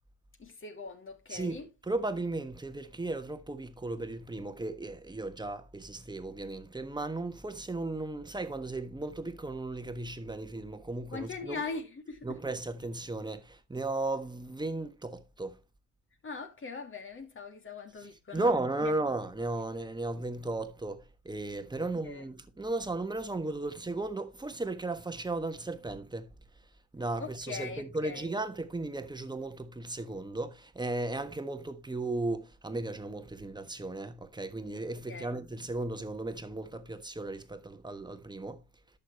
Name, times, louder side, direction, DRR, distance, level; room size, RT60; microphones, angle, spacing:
voice 1, 0.4-1.7 11.1-12.4 16.2-18.4 22.0-22.2 27.2-28.3 35.1-35.3, left 4 dB, 40° left, 2.6 m, -41 dB
voice 2, 1.3-1.6 1.9-11.6 12.2-15.6 18.3-26.3 26.9-38.6, right 2 dB, 15° right, 1.3 m, -35 dB
11.5 x 6.8 x 3.1 m
cardioid pair, 90°, 30 cm